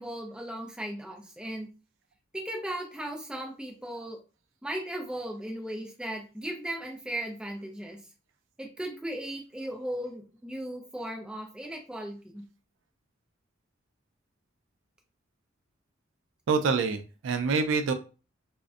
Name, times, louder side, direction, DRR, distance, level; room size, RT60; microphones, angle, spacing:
voice 1, 0.0-1.7 2.3-4.2 4.6-8.0 8.6-12.4, right 1 dB, 5° right, 1 dB, 0.5 m, -37 dB
voice 2, 16.5-17.9, right 4 dB, 70° right, 8 dB, 0.4 m, -26 dB
2.5 x 2.1 x 2.4 m, 0.33 s
head